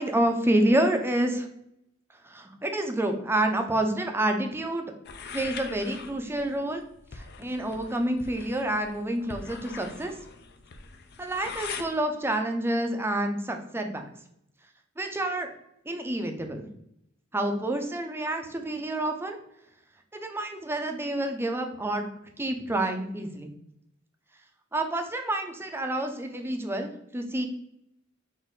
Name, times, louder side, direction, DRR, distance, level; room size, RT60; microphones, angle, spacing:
voice 1, 0.0-1.5 2.2-4.9 5.3-6.8 7.1-10.1 11.2-14.1 15.0-15.5 15.9-16.7 17.3-19.4 20.1-22.0 22.4-23.5 24.7-27.5, right 1 dB, 10° right, 5 dB, 0.5 m, -28 dB
sound 1, 5.1-11.9, left 5 dB, 55° left, 0.4 m, -42 dB
4.2 x 2.6 x 3.8 m, 0.76 s
head